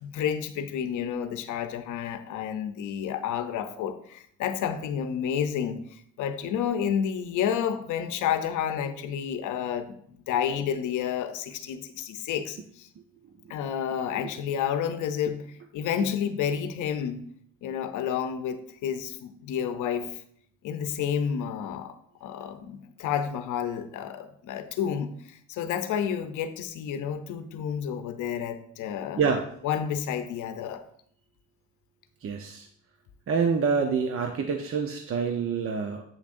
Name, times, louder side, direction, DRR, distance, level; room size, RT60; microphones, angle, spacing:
voice 1, 0.0-12.9 13.5-17.2 17.6-20.2 20.6-21.9 22.2-29.2 29.6-30.8, left 8 dB, 85° left, 10 dB, 0.7 m, -30 dB
voice 2, 32.2-32.7 33.3-36.0, right 5 dB, 45° right, 4 dB, 0.7 m, -26 dB
8.3 x 7.1 x 2.5 m, 0.65 s
cardioid pair, 90°, 30 cm